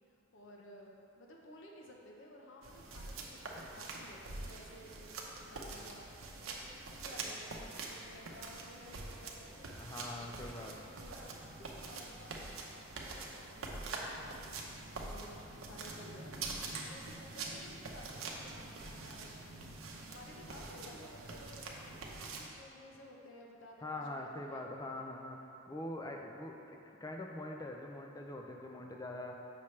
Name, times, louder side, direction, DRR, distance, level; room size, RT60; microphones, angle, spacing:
voice 1, 0.3-9.7 10.2-12.4 12.9-14.6 15.0-19.6 20.1-25.0, left 1 dB, 65° left, -1 dB, 0.8 m, -55 dB
sound 1, 2.6-22.5, right 3 dB, 80° right, 0.8 m, -45 dB
voice 2, 9.8-10.8 23.8-25.4 25.7-29.4, left 1 dB, 20° left, 1 dB, 0.5 m, -43 dB
7.1 x 5.9 x 3.2 m, 2.6 s
head